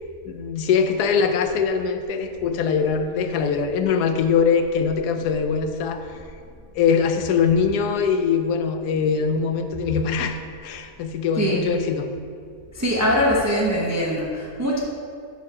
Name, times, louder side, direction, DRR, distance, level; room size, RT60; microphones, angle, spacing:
voice 1, 0.3-6.2 6.7-12.1, left 6 dB, 85° left, 7 dB, 1.1 m, -22 dB
voice 2, 11.4-11.7 12.7-14.8, equal, 20° right, -4 dB, 0.4 m, -22 dB
7.3 x 3.9 x 5.3 m, 2.3 s
omnidirectional pair, 1.7 m